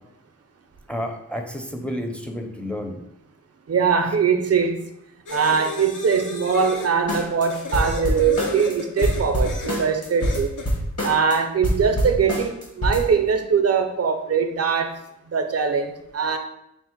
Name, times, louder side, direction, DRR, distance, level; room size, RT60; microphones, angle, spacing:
voice 1, 0.9-3.0, equal, 5° left, 3 dB, 0.5 m, -30 dB
voice 2, 3.7-4.8 5.3-10.5 11.0-14.9 15.3-16.4, right 6 dB, 50° right, 7 dB, 0.5 m, -22 dB
sound 1, 5.3-6.9 7.5-9.8 10.2-10.7, left 3 dB, 80° left, 0.7 m, -34 dB
sound 2, 7.1-7.5 7.7-8.7 9.0-11.3 11.6-13.0, equal, 50° left, 1.2 m, -24 dB
4.4 x 2.0 x 4.4 m, 0.83 s
wide cardioid pair, 75°, 31 cm